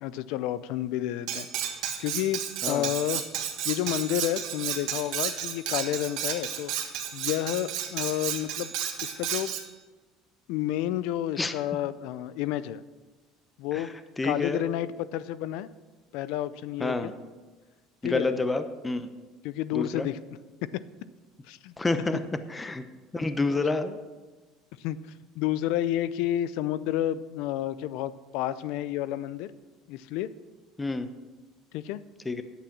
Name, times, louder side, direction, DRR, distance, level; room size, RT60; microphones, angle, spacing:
voice 1, 0.0-1.5 2.0-3.3 3.6-6.7 7.1-8.7 9.0-9.5 10.5-12.8 13.6-13.9 14.2-15.7 16.1-17.1 18.0-18.4 19.4-20.2 21.5-21.7 24.8-25.0 25.4-29.5 29.9-30.3 31.7-32.0, left 13 dB, 75° left, 16 dB, 0.5 m, -30 dB
Cutlery silverware, 1.3-9.7, right 9 dB, 70° right, 1.6 m, -32 dB
voice 2, 13.7-14.6 16.8-17.1 18.0-19.1 19.7-20.1 21.8-22.2 22.5-22.8 23.1-24.0 30.8-31.1 32.3-32.4, left 3 dB, 15° left, 10 dB, 0.9 m, -28 dB
10.0 x 8.5 x 6.1 m, 1.3 s
supercardioid pair, 85°, 0 cm